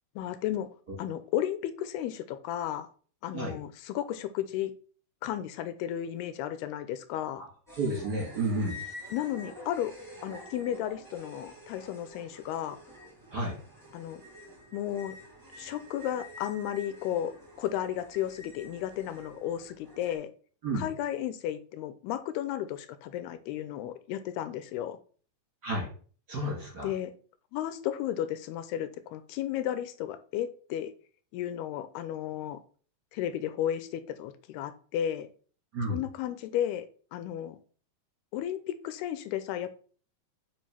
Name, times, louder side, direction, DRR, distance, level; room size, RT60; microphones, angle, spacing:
voice 1, 0.2-0.7 1.0-2.9 3.2-4.7 5.2-7.4 9.1-10.0 10.2-12.8 13.9-14.2 14.7-15.2 15.5-20.3 20.7-25.0 26.8-27.1 27.5-30.9 31.3-32.6 33.1-35.3 35.9-36.9 37.1-37.6 38.3-39.7, left 11 dB, 85° left, 12 dB, 2.7 m, -33 dB
sound 1, 7.7-20.1, left 1 dB, 5° right, 2.6 m, -48 dB
voice 2, 7.8-8.8 13.3-13.6 20.6-20.9 25.6-25.9 26.3-26.9 35.7-36.0, right 1 dB, 30° right, -2 dB, 2.6 m, -31 dB
7.5 x 5.2 x 5.7 m, 0.43 s
omnidirectional pair, 4.6 m